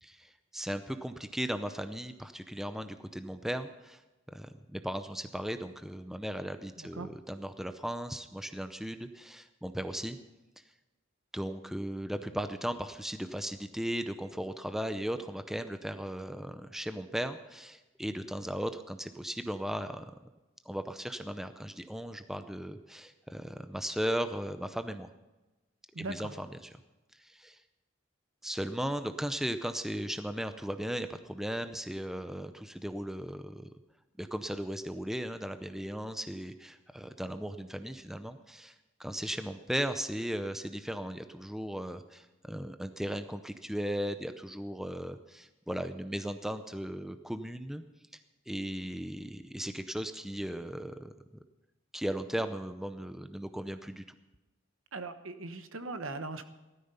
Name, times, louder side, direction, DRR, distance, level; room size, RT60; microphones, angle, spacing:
voice 1, 0.0-4.0 4.3-10.2 11.3-20.1 20.7-25.1 26.0-26.7 27.2-27.6 28.4-33.7 34.2-38.7 39.0-47.8 48.5-51.1 51.9-54.0, equal, ahead, 9 dB, 0.6 m, -37 dB
voice 2, 6.8-7.1 25.9-26.3 54.9-56.5, right 3 dB, 75° right, 10 dB, 1.2 m, -39 dB
15.5 x 13.0 x 5.6 m, 1.1 s
head